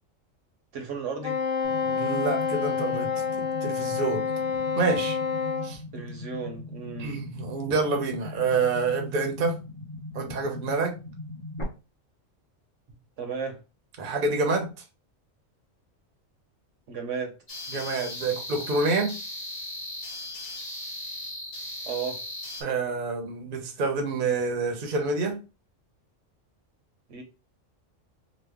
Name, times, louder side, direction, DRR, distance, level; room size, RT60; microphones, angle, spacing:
voice 1, 0.7-1.4 5.9-7.1 13.2-13.6 16.9-17.3 21.8-22.2 27.1-27.2, right 5 dB, 70° right, 4 dB, 1.1 m, -34 dB
Wind instrument woodwind instrument, 1.2-5.7, left 6 dB, 75° left, 1.1 m, -28 dB
sound 1, 1.6-11.6, left 2 dB, 30° left, 0.7 m, -40 dB
voice 2, 1.9-3.1 3.6-4.2 4.8-5.2 5.6-5.8 7.0-9.6 10.1-11.0 14.0-14.7 17.7-19.1 22.6-25.4, right 4 dB, 50° right, 4 dB, 0.8 m, -27 dB
sound 2, 17.5-22.6, left 1 dB, 55° left, 1.2 m, -37 dB
3.1 x 2.2 x 3.4 m, 0.30 s
omnidirectional pair, 1.3 m